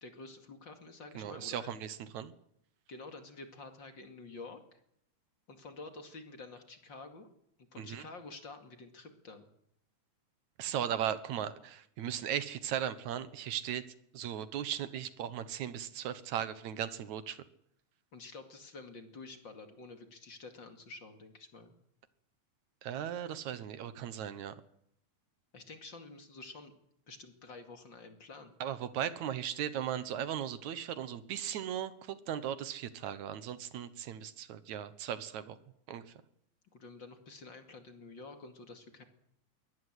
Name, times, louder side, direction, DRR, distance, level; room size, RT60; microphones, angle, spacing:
voice 1, 0.0-1.7 2.9-4.8 5.5-7.3 7.7-9.5 18.1-21.7 25.5-26.7 27.1-28.6 36.7-39.0, left 3 dB, 40° left, 6 dB, 2.8 m, -49 dB
voice 2, 1.2-2.3 7.8-8.0 10.6-13.8 14.1-17.4 22.8-24.5 28.6-35.6 35.9-36.1, right 10 dB, 75° right, 13 dB, 2.5 m, -37 dB
23.5 x 18.0 x 8.2 m, 0.74 s
omnidirectional pair, 3.4 m